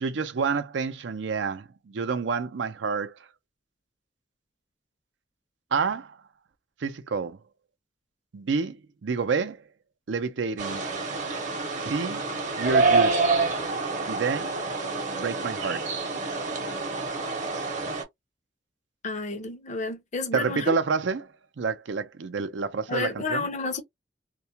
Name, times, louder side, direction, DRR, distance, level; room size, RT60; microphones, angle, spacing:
voice 1, 0.0-3.2 5.7-6.2 6.8-7.4 8.3-9.6 10.1-10.8 11.8-12.2 12.6-13.2 14.1-14.5 15.2-15.9 20.3-21.3 21.6-23.5, right 5 dB, 80° right, 0.5 m, -28 dB
sound 1, 10.6-18.0, right 3 dB, 40° right, 0.8 m, -27 dB
voice 2, 19.0-20.8 22.9-23.8, left 3 dB, 40° left, 0.6 m, -30 dB
2.3 x 2.1 x 2.7 m
head